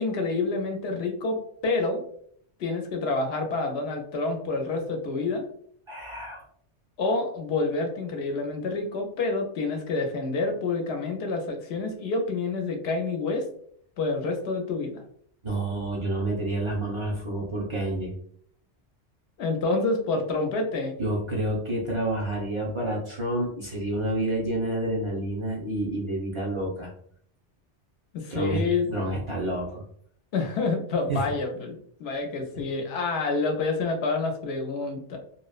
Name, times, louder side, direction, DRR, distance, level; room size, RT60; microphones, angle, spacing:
voice 1, 0.0-2.0 2.6-5.4 7.0-13.4 14.0-15.0 19.4-20.9 28.1-28.9 30.3-35.2, left 3 dB, 70° left, 4 dB, 0.8 m, -28 dB
voice 2, 5.9-6.4 15.4-18.1 21.0-26.9 28.3-29.8 31.1-31.2, right 1 dB, 50° right, -3 dB, 0.3 m, -29 dB
2.7 x 2.0 x 2.3 m, 0.64 s
omnidirectional pair, 1.2 m